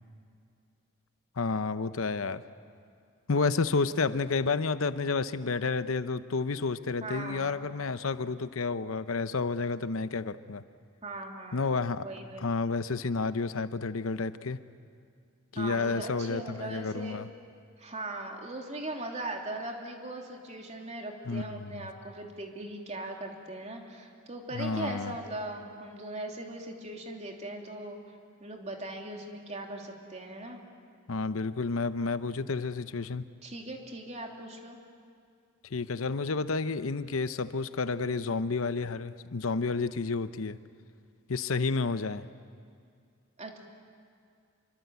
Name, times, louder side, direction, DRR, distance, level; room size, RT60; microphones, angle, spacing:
voice 1, 1.4-2.4 3.3-10.6 11.5-12.1 12.4-14.6 15.5-17.3 21.3-21.8 24.5-25.1 31.1-33.2 35.7-40.6 41.3-42.3, left 4 dB, 75° left, 12 dB, 0.8 m, -30 dB
voice 2, 7.0-7.5 11.0-11.7 12.0-12.4 15.5-17.2 17.8-28.0 28.4-30.6 33.4-34.8 43.4-43.6, right 2 dB, 35° right, 1 dB, 3.1 m, -39 dB
26.0 x 24.0 x 8.2 m, 2.4 s
head